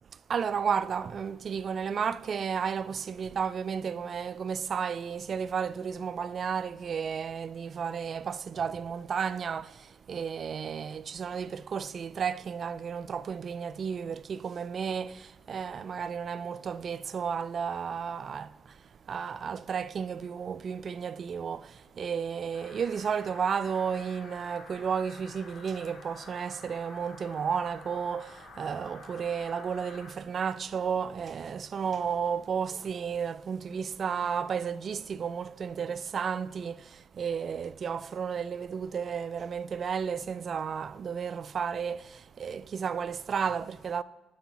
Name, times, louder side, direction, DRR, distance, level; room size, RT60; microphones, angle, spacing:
voice 1, 0.3-44.0, right 7 dB, 50° right, 0.3 m, -33 dB
sound 1, 22.5-30.1, left 3 dB, 65° left, 2.7 m, -50 dB
20.5 x 6.9 x 2.9 m
cardioid pair, 90°, 0 cm